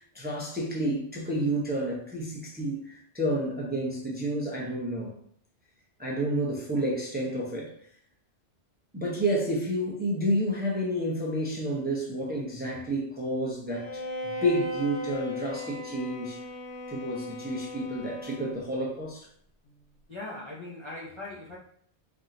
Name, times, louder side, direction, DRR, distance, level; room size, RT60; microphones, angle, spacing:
voice 1, 0.0-5.1 6.0-7.7 8.9-16.4 16.9-19.3, right 1 dB, 10° right, -3 dB, 0.6 m, -30 dB
Bowed string instrument, 13.7-18.8, left 1 dB, 80° left, 1.0 m, -37 dB
voice 2, 20.1-21.6, left 2 dB, 30° left, -5 dB, 0.6 m, -40 dB
3.5 x 2.8 x 3.7 m, 0.63 s
omnidirectional pair, 1.2 m